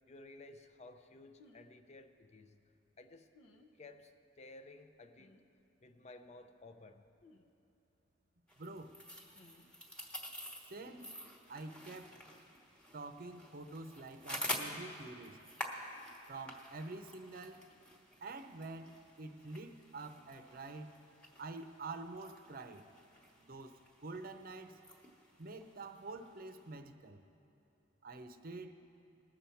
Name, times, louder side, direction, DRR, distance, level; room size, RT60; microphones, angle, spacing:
voice 1, 0.1-2.6 3.0-3.3 3.7-5.4 5.8-7.0, left 2 dB, 35° left, 9 dB, 0.6 m, -55 dB
sound 1, 1.4-1.7 3.3-3.7 5.2-5.4 7.2-7.4 9.3-9.7 11.8-12.0, left 2 dB, 75° left, 0.8 m, -62 dB
sound 2, 8.5-26.7, equal, 5° left, 1.1 m, -48 dB
voice 2, 8.6-9.0 10.7-11.1 11.5-12.2 12.9-15.4 16.3-17.7 18.2-20.9 21.4-22.9 23.4-24.8 25.4-27.2 28.0-28.7, right 3 dB, 50° right, 8 dB, 0.7 m, -47 dB
20.0 x 7.0 x 4.5 m, 2.8 s
head